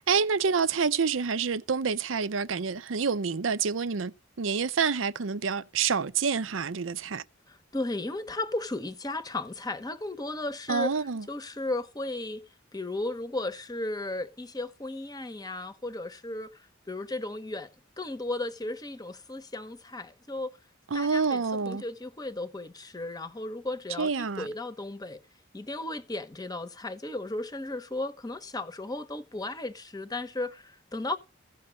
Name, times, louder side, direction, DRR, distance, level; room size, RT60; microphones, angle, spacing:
voice 1, 0.1-4.1 4.4-7.2 10.7-11.2 20.9-21.8 24.0-24.5, right 5 dB, 80° right, 0.6 m, -27 dB
voice 2, 7.5-12.4 12.7-17.7 18.0-20.6 20.9-25.2 25.5-31.2, left 2 dB, 20° left, 0.9 m, -35 dB
15.5 x 5.6 x 6.3 m
head